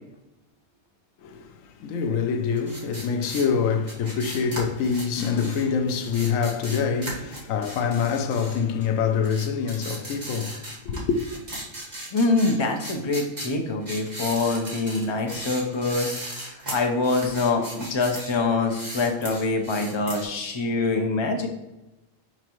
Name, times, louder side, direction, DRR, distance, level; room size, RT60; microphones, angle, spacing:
voice 1, 1.2-11.2, left 6 dB, 85° left, 1.0 m, -25 dB
sound 1, 2.6-8.9 9.2-18.4 18.6-20.2, right 1 dB, 35° right, 1.5 m, -37 dB
voice 2, 12.1-16.2 16.7-21.5, left 3 dB, 25° left, 0.7 m, -24 dB
5.8 x 5.3 x 3.0 m
omnidirectional pair, 1.3 m